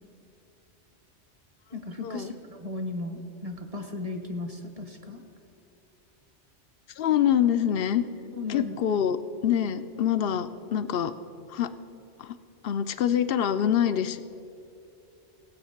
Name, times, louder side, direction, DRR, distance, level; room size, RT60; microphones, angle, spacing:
voice 1, 1.7-5.2 8.3-8.8, left 2 dB, 35° right, 5 dB, 1.1 m, -36 dB
voice 2, 7.0-8.0 8.5-9.2 9.4-11.1 11.5-11.7 12.2-12.3 12.6-14.2, left 9 dB, 60° left, 12 dB, 0.7 m, -25 dB
17.5 x 8.2 x 5.8 m, 2.8 s
omnidirectional pair, 1.2 m